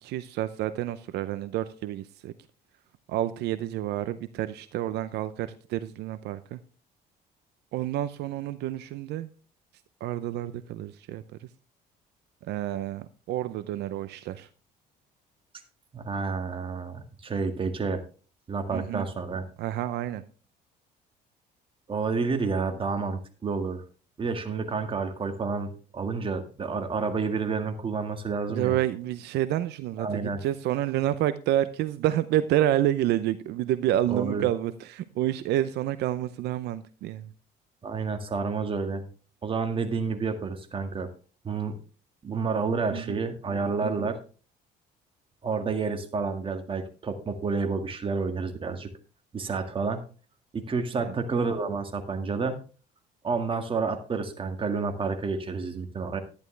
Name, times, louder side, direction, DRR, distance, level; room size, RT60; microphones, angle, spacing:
voice 1, 0.0-2.3 3.1-6.6 7.7-9.3 10.0-11.5 12.4-14.5 18.7-19.1 19.6-20.2 28.5-37.3 42.9-43.2 43.8-44.1 50.9-51.1, right 13 dB, 80° right, 13 dB, 0.7 m, -29 dB
voice 2, 15.9-18.0 18.5-19.4 21.9-23.8 24.2-28.8 30.0-30.4 34.1-34.4 37.8-39.0 39.4-41.1 41.4-41.8 42.2-44.2 45.4-48.9 49.3-50.0 50.5-52.6 53.2-56.2, right 4 dB, 30° right, 6 dB, 1.9 m, -29 dB
11.5 x 10.5 x 3.3 m, 0.37 s
cardioid pair, 110°, 17 cm